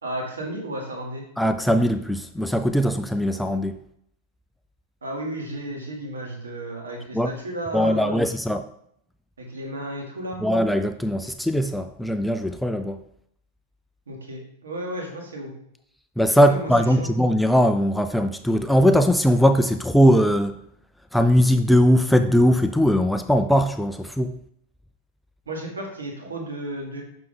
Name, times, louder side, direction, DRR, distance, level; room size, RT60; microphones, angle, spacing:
voice 1, 0.0-1.2 5.0-8.3 9.4-10.5 14.1-15.5 16.4-16.7 17.0-17.1 25.5-27.0, right 1 dB, 70° right, 1.7 m, -33 dB
voice 2, 1.4-3.8 7.1-7.3 7.7-8.7 10.4-13.0 16.2-20.5 21.1-24.3, equal, ahead, 0.3 m, -20 dB
5.9 x 5.9 x 3.8 m
figure-of-eight pair, 90°, 0 cm